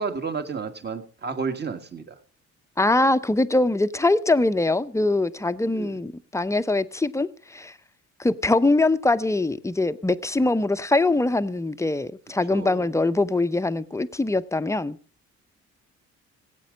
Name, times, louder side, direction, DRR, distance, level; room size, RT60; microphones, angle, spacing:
voice 1, 0.0-2.2 5.7-5.9 12.5-12.9, right 5 dB, 35° right, 1.6 m, -31 dB
voice 2, 2.8-7.7 8.2-15.0, left 2 dB, 10° left, 0.7 m, -23 dB
16.5 x 8.4 x 5.2 m
cardioid pair, 90°, 30 cm